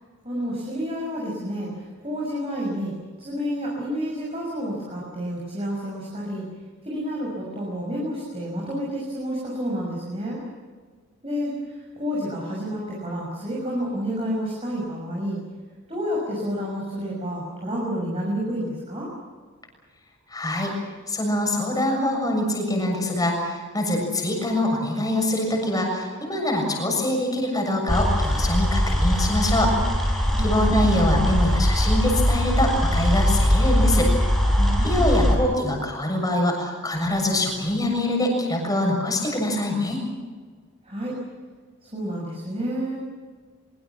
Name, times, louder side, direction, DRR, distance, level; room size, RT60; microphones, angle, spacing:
voice 1, 0.2-2.9 3.2-6.4 6.8-10.4 11.2-15.4 15.9-19.1 30.3-30.5 34.6-35.4 40.8-41.2 41.8-43.0, equal, 25° right, -3 dB, 6.1 m, -30 dB
voice 2, 20.3-20.7 21.1-29.7 30.1-34.1 34.8-40.1, left 1 dB, 15° left, 1 dB, 6.9 m, -24 dB
sound 1, 27.9-35.4, left 1 dB, ahead, 4.9 m, -21 dB
24.0 x 23.5 x 7.3 m, 1.5 s
head